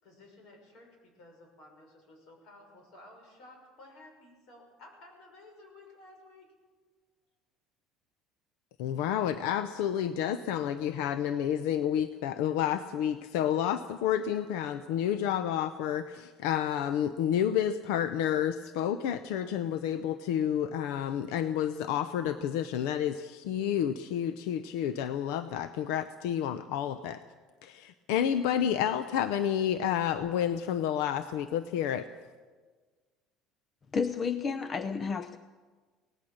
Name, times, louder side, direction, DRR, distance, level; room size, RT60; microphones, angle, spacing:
voice 1, 0.0-6.5, left 2 dB, 55° left, 3 dB, 6.4 m, -54 dB
voice 2, 8.8-27.2 27.6-32.1, left 9 dB, 90° left, 11 dB, 0.7 m, -30 dB
voice 3, 33.9-35.4, left 5 dB, 25° left, 12 dB, 0.5 m, -31 dB
23.5 x 18.5 x 6.5 m, 1.4 s
cardioid pair, 165°, 0 cm